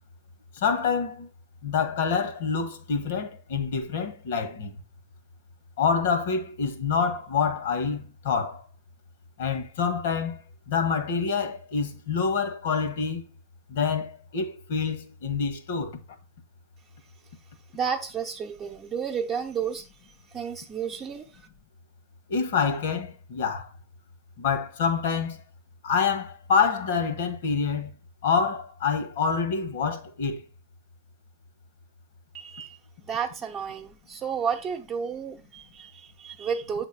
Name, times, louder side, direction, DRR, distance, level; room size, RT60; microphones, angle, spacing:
voice 1, 0.5-1.3 1.6-4.7 5.8-8.6 9.4-13.3 13.7-16.0 22.3-23.7 24.4-25.4 25.8-27.9 28.2-30.4, left 6 dB, 60° left, 1.5 m, -27 dB
voice 2, 17.7-19.8 20.3-21.5 32.3-36.8, right 7 dB, 25° right, 0.9 m, -32 dB
8.0 x 3.7 x 4.8 m
figure-of-eight pair, 95°, 0 cm